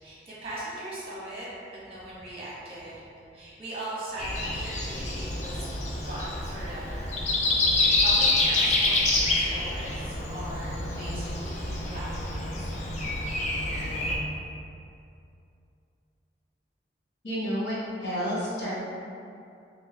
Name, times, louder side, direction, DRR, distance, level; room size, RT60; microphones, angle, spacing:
voice 1, 0.0-3.0 3.3-5.7 6.0-7.2 7.5-9.0 9.4-12.9, right 1 dB, 30° right, -8 dB, 1.0 m, -39 dB
Breathing, 4.2-14.2, left 2 dB, 40° left, 0.4 m, -27 dB
voice 2, 17.2-17.8 18.0-18.7, equal, 75° left, -8 dB, 0.9 m, -30 dB
3.1 x 2.6 x 3.3 m, 2.6 s
head